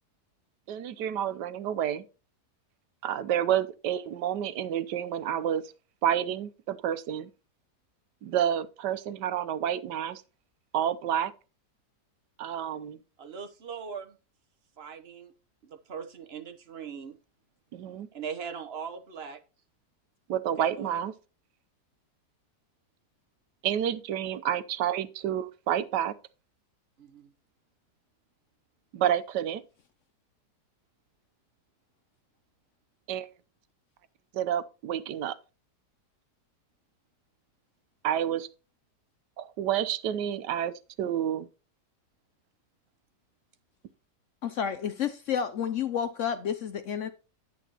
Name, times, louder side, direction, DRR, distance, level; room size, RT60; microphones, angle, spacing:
voice 1, 0.7-2.0 3.0-5.6 6.0-7.3 8.2-10.2 10.7-11.3 12.4-13.0 17.7-18.1 20.3-21.1 23.6-26.1 28.9-29.6 33.1-33.3 34.3-35.4 38.0-38.5 39.4-40.7 41.0-41.5, right 10 dB, 90° right, 1.3 m, -29 dB
voice 2, 13.2-14.2 14.8-15.3 15.6-17.2 18.1-19.4 20.6-21.0 27.0-27.3, right 6 dB, 45° right, 1.0 m, -40 dB
voice 3, 44.4-47.1, left 8 dB, 65° left, 0.8 m, -30 dB
11.0 x 8.6 x 2.9 m
omnidirectional pair, 1.8 m